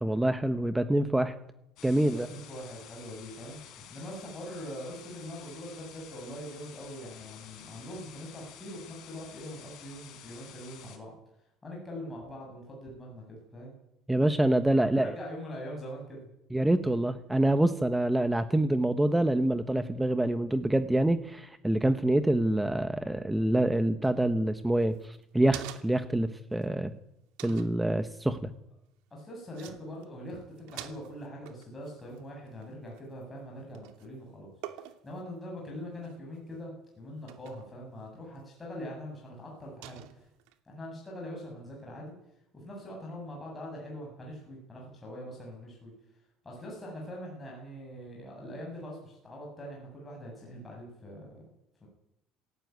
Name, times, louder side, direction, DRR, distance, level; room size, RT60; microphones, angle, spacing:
voice 1, 0.0-1.3 1.8-2.3 14.1-15.2 16.5-26.9 27.4-28.5, right 1 dB, 5° right, 10 dB, 1.0 m, -26 dB
sound 1, 1.8-11.0, left 9 dB, 55° left, 4.5 m, -50 dB
voice 2, 2.0-11.1 11.6-13.8 14.7-16.2 29.1-40.3 40.6-42.1 42.5-51.4 51.8-51.9, equal, 15° left, -2 dB, 7.7 m, -43 dB
sound 2, 24.8-26.2 26.6-26.7 27.4-27.8 29.2-29.3 29.5-29.8 30.0-30.3 30.6-33.4 33.7-34.1 34.6-35.2 35.9-36.4 37.3-37.7 38.4-38.5 39.8-40.5, right 13 dB, 80° right, 2.6 m, -46 dB
26.0 x 16.5 x 9.5 m, 0.83 s
cardioid pair, 165°, 0 cm